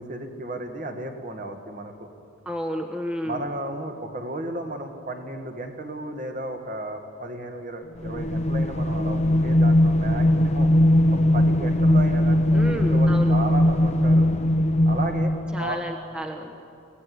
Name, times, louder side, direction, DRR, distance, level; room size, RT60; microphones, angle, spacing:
voice 1, 0.0-2.1 3.2-10.7 11.3-14.3 14.9-15.3 15.6-15.8, right 1 dB, 40° right, 4 dB, 2.2 m, -34 dB
voice 2, 2.4-3.4 12.5-13.4 15.5-16.5, equal, 5° right, 1 dB, 1.2 m, -31 dB
sound 1, 8.0-15.7, left 1 dB, 30° left, 1.0 m, -20 dB
25.0 x 16.5 x 9.6 m, 2.4 s
head